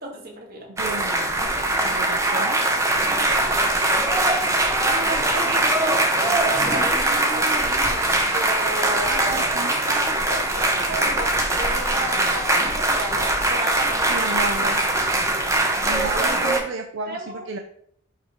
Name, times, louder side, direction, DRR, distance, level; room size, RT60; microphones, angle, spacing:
voice 1, 0.0-0.7 4.8-9.4 9.9-11.3 11.6-14.7 16.2-16.5 17.0-17.4, right 1 dB, 45° right, -1 dB, 1.6 m, -33 dB
voice 2, 0.7-1.5 1.8-2.6 9.0-9.7 14.1-14.8 15.8-17.6, right 4 dB, 65° right, 4 dB, 0.5 m, -32 dB
sound 1, 0.8-16.6, right 2 dB, 15° right, 0.7 m, -22 dB
sound 2, 2.9-15.6, left 1 dB, 55° left, 1.5 m, -40 dB
6.5 x 2.9 x 4.9 m, 0.67 s
head